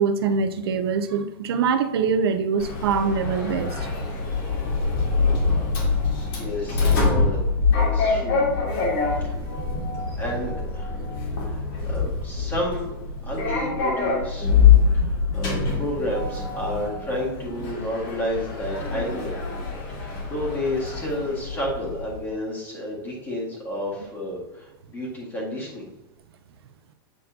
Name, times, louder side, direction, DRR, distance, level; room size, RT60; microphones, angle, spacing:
voice 1, 0.0-3.9 8.5-8.6 9.5-10.0 11.8-12.0 15.0-15.1, right 6 dB, 90° right, 8 dB, 0.6 m, -24 dB
Sliding door, 2.6-22.2, left 5 dB, 60° left, 2.2 m, -24 dB
voice 2, 6.3-7.4 7.7-8.4 9.2-9.3 10.1-10.9 11.4-12.9 13.2-14.5 15.3-19.4 20.3-25.9, left 1 dB, 15° left, -4 dB, 1.8 m, -31 dB
8.1 x 4.3 x 2.7 m, 0.97 s
supercardioid pair, 165°, 13 cm